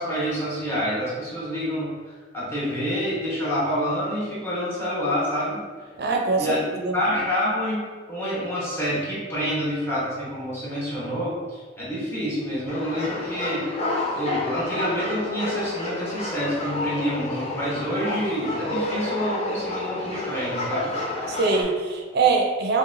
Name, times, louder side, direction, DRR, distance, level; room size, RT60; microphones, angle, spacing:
voice 1, 0.0-1.9 2.3-5.6 6.4-6.6 6.9-7.8 8.1-13.7 14.1-20.9, equal, 15° left, -8 dB, 1.1 m, -27 dB
voice 2, 6.0-7.0 21.3-22.8, right 4 dB, 55° right, 1 dB, 0.6 m, -23 dB
sound 1, 12.7-21.6, left 2 dB, 35° left, 0.7 m, -30 dB
5.5 x 2.2 x 2.7 m, 1.5 s
head